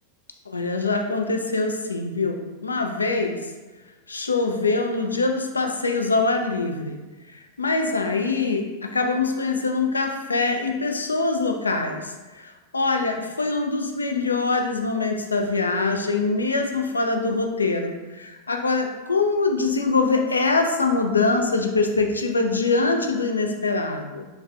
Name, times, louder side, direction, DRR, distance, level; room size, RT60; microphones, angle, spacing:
voice 1, 0.5-3.5 4.1-7.0 7.3-24.3, left 3 dB, 75° left, 4 dB, 0.3 m, -24 dB
3.2 x 3.1 x 2.5 m, 1.2 s
figure-of-eight pair, 90°, 0 cm